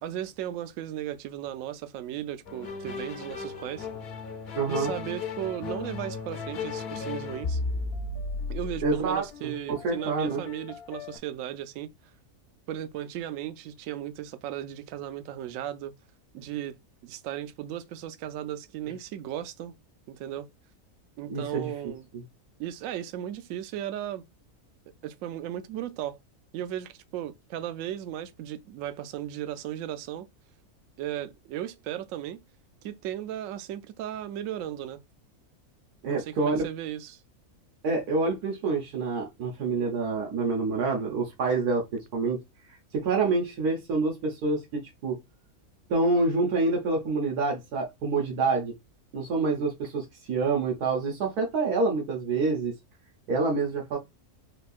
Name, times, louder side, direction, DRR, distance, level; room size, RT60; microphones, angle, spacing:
voice 1, 0.0-3.9 4.7-7.6 8.5-11.9 12.7-15.9 16.3-16.8 17.0-19.7 20.1-20.5 21.2-22.1 22.6-24.2 25.0-26.2 26.5-30.3 31.0-32.4 32.8-35.0 36.0-37.2 49.5-49.7, right 11 dB, 70° right, 0.9 m, -36 dB
sound 1, 2.5-11.2, left 4 dB, 55° left, 0.8 m, -35 dB
voice 2, 4.5-4.9 8.8-10.4 21.3-21.7 36.0-36.6 37.8-42.4 42.9-45.2 45.9-48.7 49.1-52.7 53.3-54.0, right 3 dB, 90° right, 1.5 m, -27 dB
4.3 x 2.7 x 2.4 m
omnidirectional pair, 1.6 m